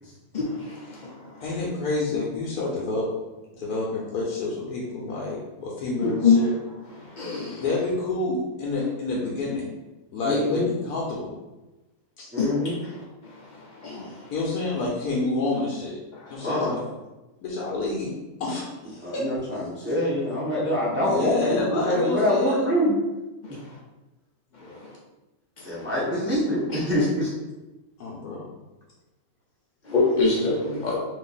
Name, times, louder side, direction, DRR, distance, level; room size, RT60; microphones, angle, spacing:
voice 1, 1.4-3.1 3.6-6.5 7.6-9.7 10.1-11.4 12.2-12.3 14.3-16.0 16.3-16.8 17.4-18.1 18.4-19.2 19.5-19.6 20.9-22.6 24.6-24.8 26.0-26.1 26.7-27.1 28.0-28.5, left 3 dB, 90° left, -4 dB, 1.2 m, -28 dB
voice 2, 6.0-6.4 7.2-7.6 12.4-12.5 13.8-14.0 29.9-31.0, left 4 dB, 70° left, -4 dB, 0.4 m, -22 dB
voice 3, 10.2-10.7 12.3-12.8 16.4-16.7 19.0-23.0 23.5-23.6 25.6-27.3 29.9-30.0, left 1 dB, 15° right, -7 dB, 0.4 m, -25 dB
2.9 x 2.5 x 3.8 m, 1.1 s
omnidirectional pair, 1.6 m